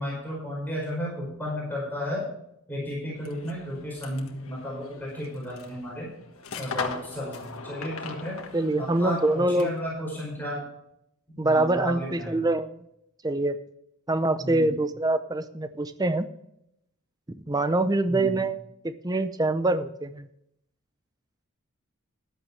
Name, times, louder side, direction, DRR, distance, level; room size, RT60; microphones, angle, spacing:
voice 1, 0.0-2.2 2.7-6.1 6.6-8.3 8.8-10.6 11.4-12.4 14.4-14.7 18.1-18.4, equal, 10° left, -5 dB, 5.3 m, -33 dB
sound 1, 3.1-9.9, left 5 dB, 80° left, 1.6 m, -39 dB
voice 2, 8.5-9.7 11.4-12.8 13.2-13.6 14.1-16.3 17.5-18.6 18.8-20.3, right 2 dB, 20° right, 11 dB, 0.6 m, -25 dB
14.0 x 11.0 x 3.3 m, 0.77 s
head